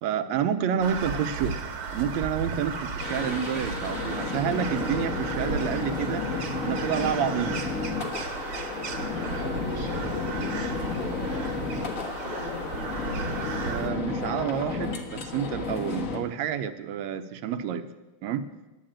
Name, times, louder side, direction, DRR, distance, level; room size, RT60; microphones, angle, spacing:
voice 1, 0.0-1.6 1.9-6.3 6.6-7.6 13.6-17.8 18.2-18.4, right 8 dB, 75° right, 9 dB, 1.8 m, -29 dB
Crow, 0.8-13.9, right 5 dB, 55° right, 1.9 m, -35 dB
sound 1, 3.0-16.2, left 4 dB, 55° left, 0.8 m, -32 dB
voice 2, 5.7-6.4 9.2-11.4 11.8-12.7, left 2 dB, 90° left, -1 dB, 0.5 m, -39 dB
11.5 x 8.9 x 8.7 m, 1.1 s
omnidirectional pair, 3.4 m